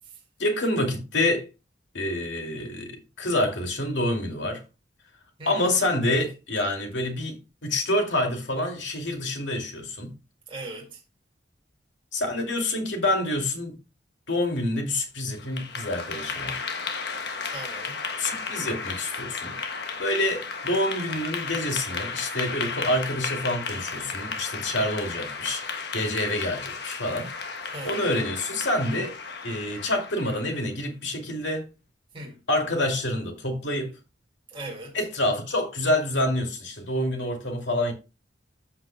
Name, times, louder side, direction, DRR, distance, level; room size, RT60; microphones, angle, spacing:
voice 1, 0.4-1.5 1.9-4.6 5.5-10.1 12.1-13.8 14.3-16.6 18.2-19.6 20.0-27.3 27.8-29.2 29.4-31.7 32.5-34.0 34.9-37.9, left 1 dB, 80° left, 2.5 m, -27 dB
voice 2, 10.5-11.0 17.4-18.0 27.7-28.1 32.1-32.3 34.5-35.0, right 2 dB, 30° right, 2.0 m, -38 dB
Clapping / Applause, 15.3-30.6, left 5 dB, 60° left, 1.2 m, -34 dB
14.5 x 5.7 x 2.2 m
head